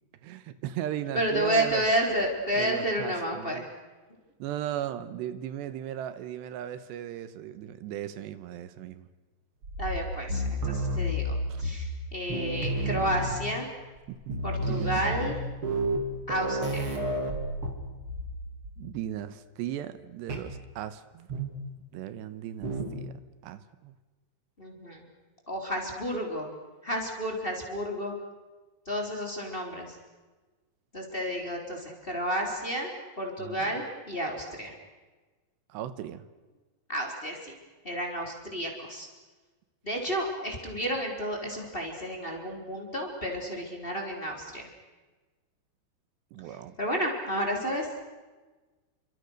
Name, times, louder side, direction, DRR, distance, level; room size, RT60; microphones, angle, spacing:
voice 1, 0.2-1.8 2.5-3.7 4.4-9.1 11.5-11.6 14.1-14.2 14.7-15.3 18.8-21.3 21.9-23.9 33.4-33.6 35.7-36.3 46.3-46.8, right 11 dB, 80° right, 12 dB, 3.2 m, -37 dB
voice 2, 1.1-3.7 9.8-13.7 14.4-15.4 16.3-16.9 24.6-25.1 25.5-26.5 26.8-28.1 28.9-30.0 30.9-34.7 36.9-37.5 37.8-39.1 39.8-44.7 46.5-48.0, equal, 15° left, 0 dB, 4.0 m, -31 dB
sound 1, 9.6-12.0 12.3-13.6 14.0-14.1 14.3-18.4 18.6-19.0 20.3-20.5 21.3-21.7 22.6-23.0, right 1 dB, 35° right, 3.5 m, -31 dB
29.0 x 25.5 x 6.6 m, 1.3 s
omnidirectional pair, 4.9 m